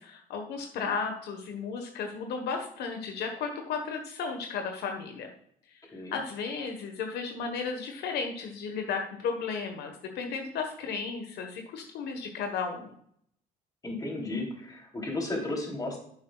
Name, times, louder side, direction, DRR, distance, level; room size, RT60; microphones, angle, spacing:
voice 1, 0.0-5.3 6.1-12.9, left 5 dB, 75° left, 4 dB, 1.4 m, -34 dB
voice 2, 13.8-16.0, left 2 dB, 20° left, 0 dB, 3.2 m, -34 dB
10.5 x 7.8 x 2.4 m, 0.66 s
cardioid pair, 110°, 17 cm